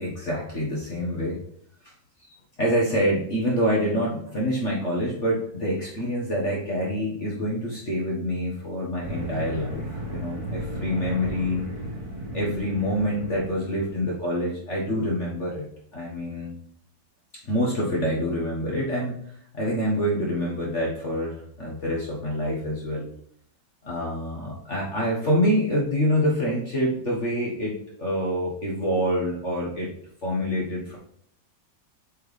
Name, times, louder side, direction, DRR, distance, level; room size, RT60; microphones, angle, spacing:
voice 1, 0.0-1.4 1.8-1.9 2.2-11.6 12.3-15.7 15.9-16.5 17.4-23.1 23.8-29.9 30.2-31.0, equal, 40° left, -4 dB, 1.6 m, -26 dB
sound 1, 9.0-14.1, right 1 dB, 65° right, 3.4 m, -34 dB
8.1 x 4.7 x 3.3 m, 0.66 s
omnidirectional pair, 2.1 m